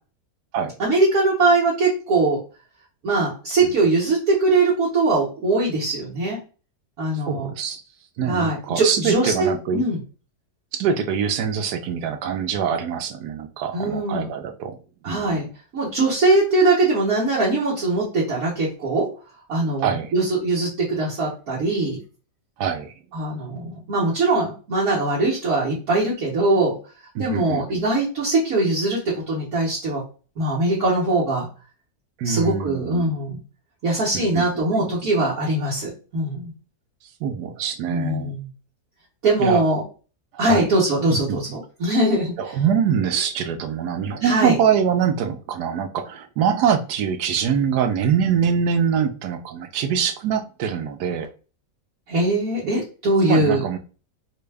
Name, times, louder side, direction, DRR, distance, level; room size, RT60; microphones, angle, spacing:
voice 1, 0.8-2.4 3.0-6.4 7.0-7.5 8.3-10.0 13.7-14.3 15.0-19.1 19.5-22.0 23.1-26.8 27.2-30.0 30.4-31.5 32.2-33.4 33.8-36.5 37.9-38.5 39.2-39.8 40.4-42.3 44.2-44.5 52.1-53.8, right 2 dB, 60° right, -7 dB, 1.5 m, -21 dB
voice 2, 7.3-7.8 8.2-9.8 10.7-14.8 15.1-15.4 19.8-20.1 22.6-22.9 27.1-27.8 32.2-33.1 34.1-34.9 37.2-38.3 39.4-39.6 40.5-40.7 41.1-41.4 42.4-51.3 52.6-52.8 53.2-53.8, right 7 dB, 75° right, 7 dB, 1.1 m, -24 dB
4.3 x 2.2 x 3.3 m, 0.36 s
omnidirectional pair, 1.8 m